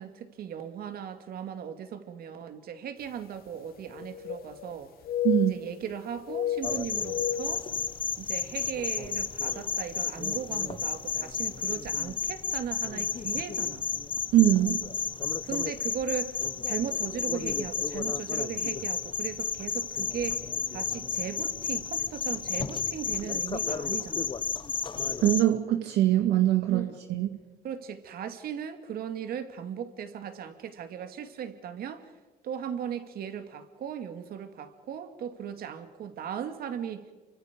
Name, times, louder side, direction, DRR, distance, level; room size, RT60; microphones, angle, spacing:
voice 1, 0.0-4.9 5.5-7.7 8.2-13.9 15.4-16.3 16.6-20.4 20.7-24.3 26.7-27.0 27.6-32.1 32.4-37.1, right 8 dB, 65° right, 8 dB, 2.4 m, -37 dB
sound 1, 3.1-3.2 3.5-4.8 5.0-5.9 6.2-8.4 8.8-8.9 9.6-9.8 10.9-11.0 11.3-11.4, left 10 dB, 65° left, 2.1 m, -34 dB
sound 2, 6.6-25.4, left 6 dB, 30° left, 1.0 m, -32 dB
voice 2, 14.3-14.8 25.2-27.3, right 13 dB, 80° right, 6 dB, 1.9 m, -23 dB
29.5 x 24.5 x 5.2 m, 1.2 s
cardioid pair, 110°, 17 cm